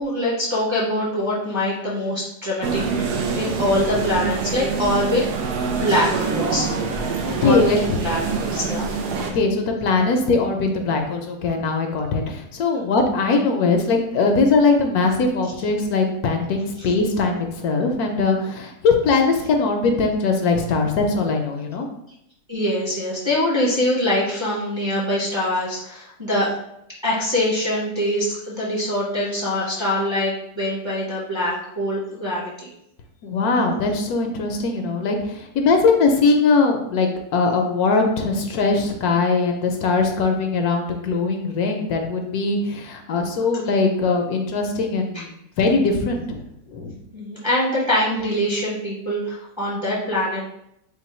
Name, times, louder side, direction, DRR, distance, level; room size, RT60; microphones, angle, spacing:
voice 1, 0.0-5.2 5.7-6.7 7.4-8.9 16.8-16.9 22.5-26.5 27.0-32.7 45.1-45.2 47.1-50.4, left 1 dB, 25° right, -7 dB, 0.8 m, -24 dB
sound 1, 2.6-9.3, right 4 dB, 80° right, 1.2 m, -25 dB
voice 2, 7.2-7.8 9.1-21.9 33.2-45.3 45.6-46.4 46.7-47.0, left 3 dB, 75° left, 3 dB, 1.1 m, -21 dB
3.8 x 2.2 x 4.2 m, 0.78 s
omnidirectional pair, 1.7 m